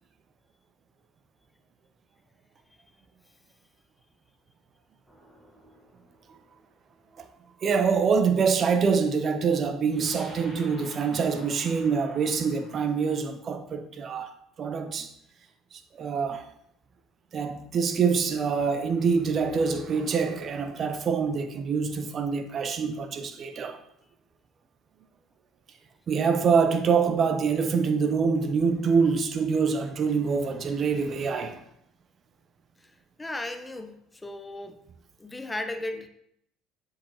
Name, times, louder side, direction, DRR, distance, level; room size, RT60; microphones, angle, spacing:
sound 1, 5.1-6.9 9.9-13.3, equal, 10° right, 1.6 m, -50 dB
voice 1, 7.6-15.1 15.7-16.5 17.3-23.8 26.1-31.6, right 5 dB, 45° right, 0.6 m, -25 dB
voice 2, 33.2-34.8 35.2-36.1, left 1 dB, 15° left, 0.6 m, -35 dB
7.2 x 4.7 x 3.0 m
hypercardioid pair, 65°, 0 cm